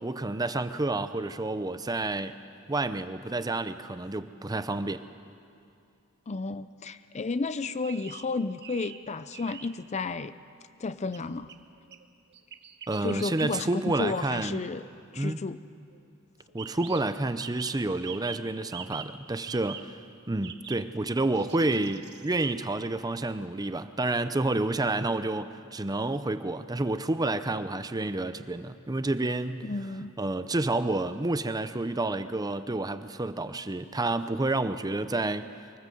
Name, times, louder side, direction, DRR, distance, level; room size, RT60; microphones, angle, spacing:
voice 1, 0.0-2.3 2.7-5.0 12.9-14.6 15.2-15.4 16.5-20.0 20.3-29.8 30.2-35.5, right 2 dB, 20° right, 11 dB, 0.6 m, -29 dB
voice 2, 6.3-10.3 10.8-11.5 13.0-14.9 15.1-15.6 29.6-30.1, left 3 dB, 30° left, 13 dB, 0.5 m, -32 dB
sound 1, 7.8-8.2 8.6-9.0 9.3-9.7 11.1-12.0 12.3-13.6 13.9-15.3 15.9-16.0 16.5-19.1 19.4-19.8 20.4-20.8 21.3-22.3, right 8 dB, 55° right, 1.1 m, -44 dB
24.0 x 19.0 x 7.8 m, 2.5 s
head